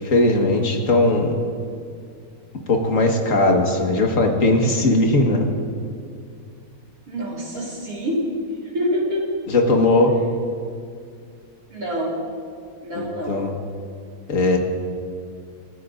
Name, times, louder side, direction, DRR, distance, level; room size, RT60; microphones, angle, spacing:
voice 1, 0.0-1.3 2.7-5.4 9.5-10.1 13.0-13.5 14.3-14.6, left 2 dB, 60° left, 2 dB, 1.9 m, -18 dB
voice 2, 7.1-8.2 8.7-9.3 11.7-12.2 12.8-13.4, equal, 75° right, -4 dB, 3.8 m, -26 dB
28.5 x 14.0 x 2.6 m, 2.3 s
omnidirectional pair, 1.6 m